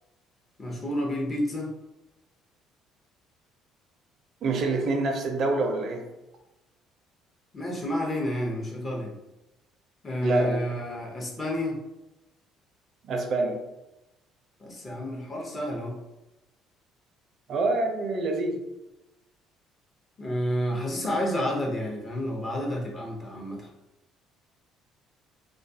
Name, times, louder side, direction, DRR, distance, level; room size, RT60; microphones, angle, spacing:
voice 1, 0.6-1.7 7.5-9.1 10.0-11.8 14.6-16.0 20.2-23.7, equal, 30° left, 0 dB, 0.6 m, -30 dB
voice 2, 4.4-6.0 10.2-10.6 13.0-13.6 17.5-18.6, right 3 dB, 55° right, 3 dB, 0.4 m, -26 dB
2.3 x 2.2 x 2.6 m, 0.96 s
cardioid pair, 95°, 0 cm